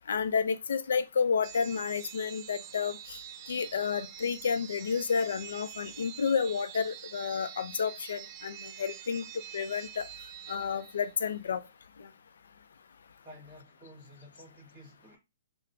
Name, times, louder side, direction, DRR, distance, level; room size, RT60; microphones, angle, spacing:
voice 1, 0.1-3.0 3.5-9.2 9.5-10.1 10.5-11.6 12.0-12.1, left 6 dB, 70° left, 0.4 m, -30 dB
sound 1, 1.4-11.3, right 11 dB, 35° right, 0.3 m, -46 dB
voice 2, 13.2-15.2, left 1 dB, 20° right, 1.6 m, -52 dB
4.0 x 2.0 x 2.6 m
hypercardioid pair, 135°, 0 cm